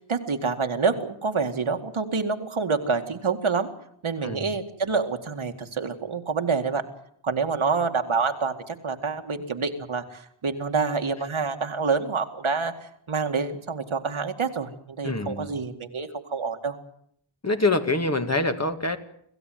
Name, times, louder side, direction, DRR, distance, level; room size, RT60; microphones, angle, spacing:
voice 1, 0.1-3.7 4.0-6.8 7.2-16.8, right 4 dB, 75° right, 5 dB, 2.2 m, -27 dB
voice 2, 15.0-15.5 17.4-19.0, left 2 dB, 30° left, 6 dB, 2.1 m, -25 dB
26.5 x 15.5 x 9.4 m, 0.70 s
wide cardioid pair, 90°, 48 cm